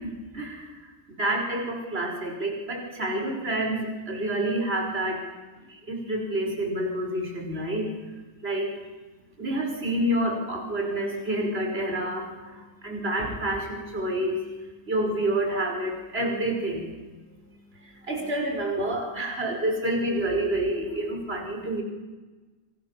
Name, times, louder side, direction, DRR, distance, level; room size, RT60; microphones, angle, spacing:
voice 1, 0.0-5.3 5.7-7.9 8.4-8.7 9.4-14.6 14.8-16.9 17.8-21.8, right 1 dB, 45° right, 1 dB, 5.8 m, -28 dB
29.5 x 25.5 x 7.5 m, 1.2 s
omnidirectional pair, 1.4 m